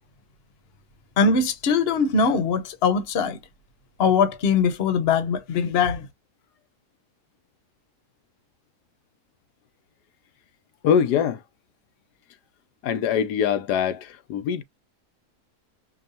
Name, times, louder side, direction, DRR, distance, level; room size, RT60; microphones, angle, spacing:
voice 1, 1.2-3.4 4.0-6.1, left 5 dB, 45° left, 1.0 m, -21 dB
voice 2, 10.8-11.4 12.8-14.6, left 8 dB, 85° left, 1.2 m, -23 dB
5.2 x 2.3 x 2.6 m
omnidirectional pair, 1.7 m